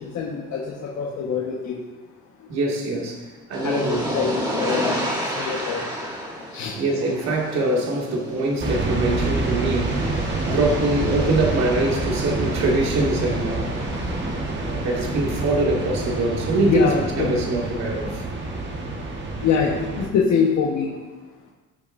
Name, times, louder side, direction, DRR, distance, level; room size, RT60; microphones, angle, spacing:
voice 1, 0.0-1.8 3.6-5.9 6.5-6.8 16.6-17.4 19.4-20.9, left 6 dB, 65° left, -2 dB, 1.4 m, -24 dB
voice 2, 2.5-4.1 6.8-13.7 14.0-14.1 14.6-18.2, right 2 dB, 60° right, -2 dB, 2.3 m, -24 dB
sound 1, 3.5-17.2, equal, 15° right, 2.6 m, -33 dB
sound 2, 8.6-20.1, right 2 dB, 35° right, 1.6 m, -27 dB
18.0 x 6.7 x 2.7 m, 1.3 s
cardioid pair, 145°, 30 cm